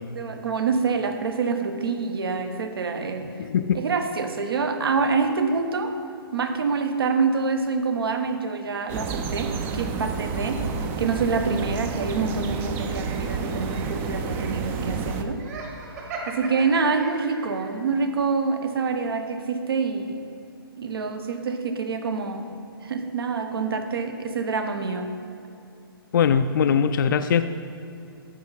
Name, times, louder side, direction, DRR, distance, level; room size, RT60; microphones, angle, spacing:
voice 1, 0.0-3.3 3.7-6.0 6.3-10.6 11.0-15.4 16.3-20.2 20.8-22.5 22.8-25.1, right 4 dB, 70° right, 7 dB, 1.0 m, -26 dB
voice 2, 3.4-3.8 26.1-27.5, left 7 dB, 55° left, 10 dB, 0.4 m, -21 dB
sound 1, 8.9-15.2, right 5 dB, 15° right, 0.4 m, -30 dB
Laughter, 15.4-17.7, right 3 dB, 40° right, 1.7 m, -37 dB
12.5 x 7.3 x 4.0 m, 2.7 s
hypercardioid pair, 150°, 13 cm